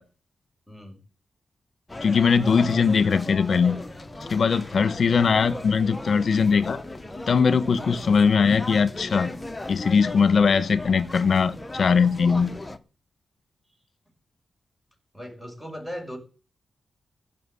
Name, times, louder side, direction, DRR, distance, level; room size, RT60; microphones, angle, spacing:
voice 1, 0.7-1.0 15.1-16.2, equal, 10° right, 6.0 m, -37 dB
sound 1, 1.9-12.8, left 2 dB, 15° left, 1.1 m, -37 dB
voice 2, 2.0-3.8 4.3-6.8 7.3-9.3 9.7-12.5, left 5 dB, 60° left, 1.2 m, -20 dB
16.0 x 5.9 x 10.0 m
cardioid pair, 95°, 0 cm